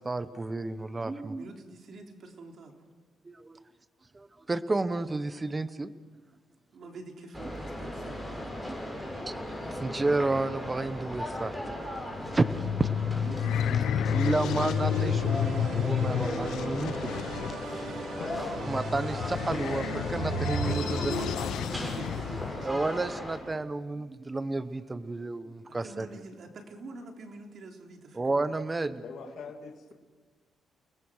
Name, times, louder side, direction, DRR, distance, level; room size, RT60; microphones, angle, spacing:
voice 1, 0.0-1.5 3.2-3.7 4.1-5.9 8.7-8.8 9.3-9.4 9.7-12.5 12.8-13.2 14.1-17.1 17.5-17.6 18.7-21.1 22.6-26.1 28.1-29.0, right 2 dB, 20° right, 13 dB, 1.1 m, -31 dB
voice 2, 1.4-2.8 6.7-8.5 13.1-14.7 17.6-18.1 20.6-22.8 25.7-28.5, right 3 dB, 55° right, 3 dB, 3.6 m, -45 dB
sound 1, 7.3-23.4, left 1 dB, 5° right, 7.9 m, -38 dB
sound 2, 12.1-22.6, left 9 dB, 85° left, 0.9 m, -31 dB
sound 3, 14.7-21.4, right 4 dB, 75° right, 5.6 m, -37 dB
voice 3, 17.9-18.7 19.2-20.0 29.0-29.9, left 5 dB, 70° left, 2 dB, 2.7 m, -45 dB
29.5 x 20.0 x 6.4 m, 1.4 s
cardioid pair, 100°, 0 cm